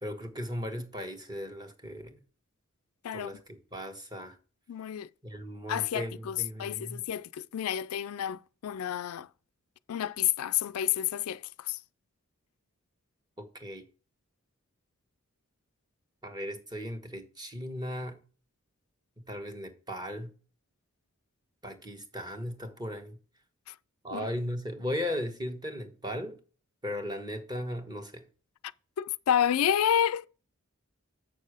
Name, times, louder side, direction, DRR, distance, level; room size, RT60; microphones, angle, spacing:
voice 1, 0.0-2.2 3.1-4.4 5.2-7.1 13.4-13.8 16.2-18.2 19.2-20.3 21.6-23.2 24.0-26.4 26.8-28.3, equal, 20° right, 1.2 m, -37 dB
voice 2, 4.7-5.1 5.7-9.3 9.9-11.8 23.7-23.8 24.1-24.3 29.0-30.3, left 10 dB, 80° left, 0.4 m, -29 dB
7.4 x 6.6 x 4.8 m
head